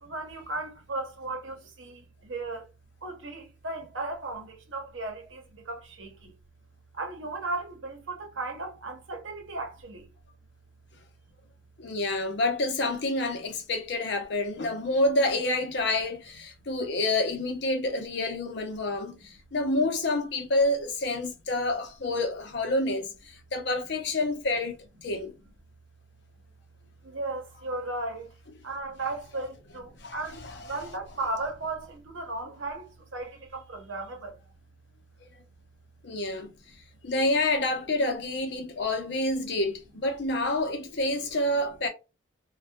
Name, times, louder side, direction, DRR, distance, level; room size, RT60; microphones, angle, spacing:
voice 1, 0.0-2.7 3.0-6.3 6.9-10.1 27.0-28.3 28.6-34.4, right 2 dB, 75° right, 0.8 m, -36 dB
voice 2, 11.8-25.3 29.4-29.5 30.0-30.6 36.0-36.5 37.0-41.9, left 2 dB, 60° left, 0.6 m, -28 dB
2.6 x 2.2 x 2.2 m
head